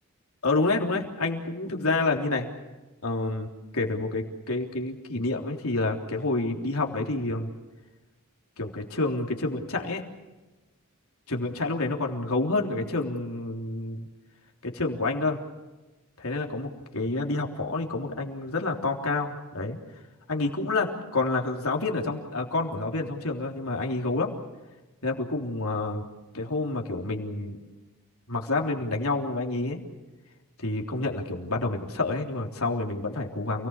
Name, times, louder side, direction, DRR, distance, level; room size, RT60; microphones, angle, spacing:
voice 1, 0.4-2.5 3.0-7.5 8.6-10.0 11.3-14.1 14.6-15.4 16.2-19.8 20.3-24.3 25.0-26.0 26.3-27.7 28.3-29.8 30.6-33.7, left 2 dB, 80° left, 1 dB, 3.5 m, -28 dB
29.0 x 19.0 x 7.2 m, 1.2 s
head